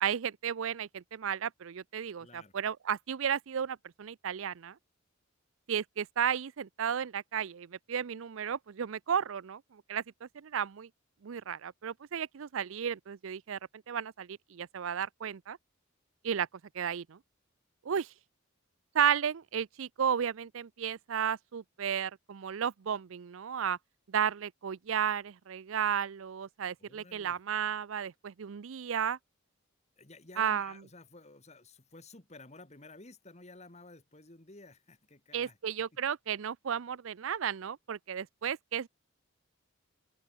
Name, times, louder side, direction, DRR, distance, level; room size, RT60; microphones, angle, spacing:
voice 1, 0.0-4.8 5.7-10.9 11.2-13.6 13.9-15.6 16.2-16.5 16.7-17.2 17.8-18.1 18.9-23.8 24.1-29.2 30.4-30.7 35.3-38.9, right 8 dB, 70° right, 0.5 m, -33 dB
voice 2, 2.2-2.5 26.8-27.4 30.0-35.6, left 2 dB, 30° left, 2.1 m, -53 dB
open air
head